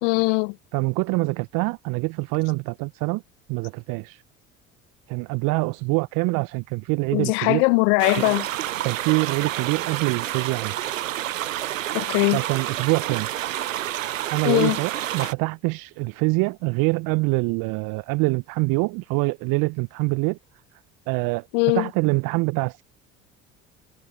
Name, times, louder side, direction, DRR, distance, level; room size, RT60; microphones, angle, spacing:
voice 1, 0.0-0.5 7.1-8.4 11.9-12.4 14.4-14.8 21.5-21.9, left 34 dB, 65° left, 1.2 m, -20 dB
voice 2, 0.7-3.2 3.5-4.2 5.1-7.6 8.2-8.3 8.8-10.8 12.3-13.3 14.3-20.4 21.1-22.8, right 27 dB, 60° right, 1.1 m, -25 dB
sound 1, 8.0-15.3, right 13 dB, 85° right, 0.6 m, -29 dB
figure-of-eight pair, 65°, 38 cm